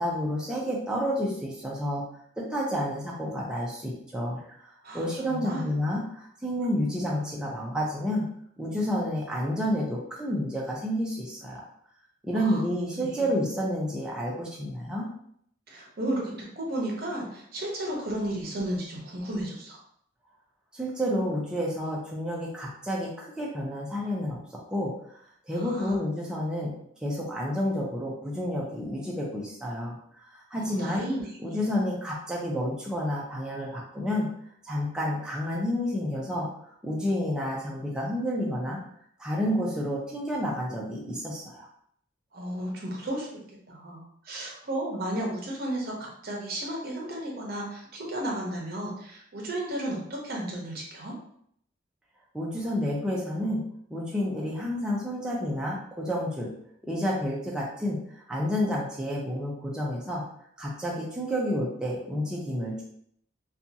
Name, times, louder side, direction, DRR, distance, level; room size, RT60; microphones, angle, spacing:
voice 1, 0.0-2.0 2.4-8.3 8.6-11.6 12.2-15.1 20.7-24.4 24.7-26.7 27.0-31.0 31.4-34.3 34.6-38.8 39.2-41.7 52.3-53.6 53.9-56.5 56.8-60.2 60.6-62.8, equal, 5° right, -4 dB, 0.4 m, -30 dB
voice 2, 4.8-5.7 12.3-12.6 13.0-13.3 15.7-19.8 25.5-26.0 30.6-31.4 42.3-43.4 43.7-51.1, right 1 dB, 50° right, -1 dB, 0.7 m, -33 dB
2.7 x 2.3 x 2.6 m, 0.67 s
head